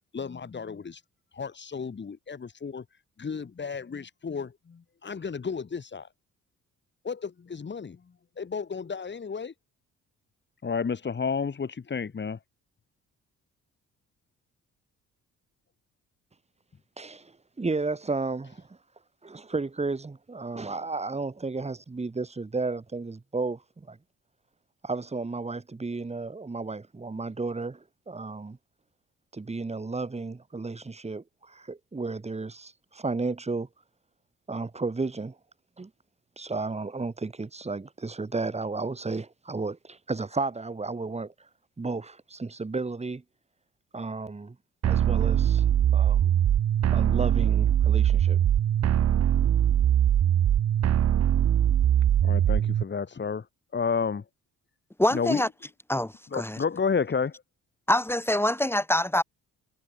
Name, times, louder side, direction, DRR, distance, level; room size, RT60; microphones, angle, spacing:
voice 1, 0.1-1.0 1.3-2.8 3.2-6.1 7.0-8.0 8.4-9.5 10.6-12.4 52.2-53.4 53.7-54.2 55.1-55.5 56.3-57.3, left 5 dB, 35° left, 5.1 m, -31 dB
voice 2, 17.0-18.8 19.2-24.0 24.8-28.6 29.3-33.7 34.5-35.3 35.8-35.9 36.4-41.3 41.8-43.2 43.9-44.6 44.9-45.7 45.9-46.3 46.9-48.4, right 3 dB, 20° right, 3.3 m, -33 dB
sound 1, 44.8-52.8, right 10 dB, 55° right, 1.4 m, -22 dB
voice 3, 55.0-55.5 55.9-56.6 57.9-59.2, left 1 dB, 10° left, 3.2 m, -25 dB
cardioid pair, 90°, 30 cm